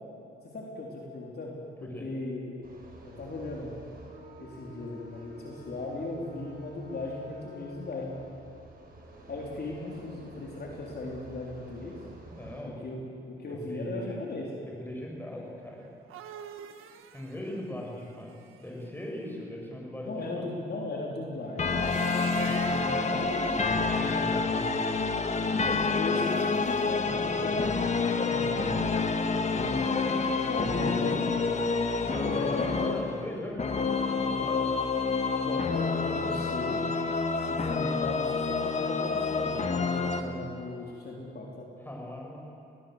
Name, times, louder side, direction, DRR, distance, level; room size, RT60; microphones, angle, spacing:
voice 1, 0.4-2.4 3.0-3.7 4.4-8.2 9.3-12.0 12.8-13.1 13.4-14.5 20.0-21.8 22.1-23.6 25.5-27.1 27.4-27.7 28.1-28.6 30.5-31.5 32.2-32.7 35.4-36.8 37.4-41.7, left 2 dB, 50° left, -2 dB, 3.7 m, -37 dB
sound 1, 2.6-12.6, right 1 dB, 45° right, 6.5 m, -49 dB
voice 2, 12.3-12.9 13.4-14.2 14.7-15.8 17.1-18.3 18.6-20.5 23.9-24.8 27.1-27.7 28.3-28.5 29.2-30.3 30.6-31.3 32.0-34.7 41.8-42.4, equal, 10° left, -1 dB, 6.8 m, -39 dB
sound 2, 15.8-18.9 21.6-23.1 26.1-27.0, right 9 dB, 90° right, 1.5 m, -45 dB
sound 3, 21.6-40.2, left 4 dB, 35° left, 1.7 m, -28 dB
21.0 x 19.5 x 8.0 m, 2.7 s
cardioid pair, 85°, 21 cm